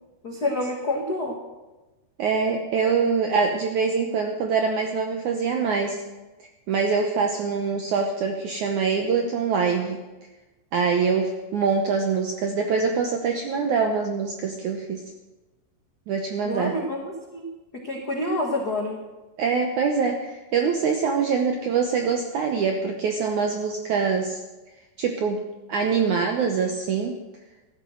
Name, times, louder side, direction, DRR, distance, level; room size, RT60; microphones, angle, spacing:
voice 1, 0.2-1.4 16.4-17.5 17.8-19.0, left 1 dB, 80° left, 0 dB, 0.8 m, -28 dB
voice 2, 2.2-6.0 6.7-10.0 10.7-15.0 16.1-16.8 19.4-24.4 25.0-25.4 25.7-27.2, right 5 dB, 80° right, 4 dB, 1.7 m, -24 dB
15.0 x 12.0 x 6.4 m, 1.1 s
omnidirectional pair, 4.7 m